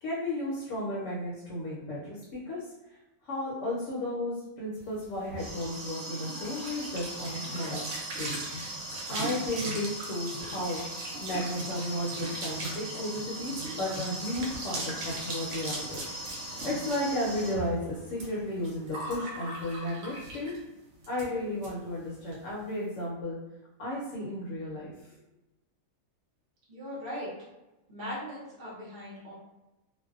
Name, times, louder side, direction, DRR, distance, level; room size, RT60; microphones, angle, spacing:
voice 1, 0.0-2.6 3.2-7.8 8.2-8.4 9.1-16.1 16.6-20.5 21.1-23.4 23.8-25.1, left 1 dB, 65° left, -5 dB, 0.9 m, -34 dB
sound 1, 4.9-20.7 21.0-21.3 21.6-21.7 22.0-22.4, right 1 dB, 75° right, 1.0 m, -37 dB
voice 2, 26.7-27.3 27.9-29.3, equal, 50° right, -6 dB, 0.8 m, -39 dB
2.5 x 2.1 x 2.3 m, 1.0 s
omnidirectional pair, 1.5 m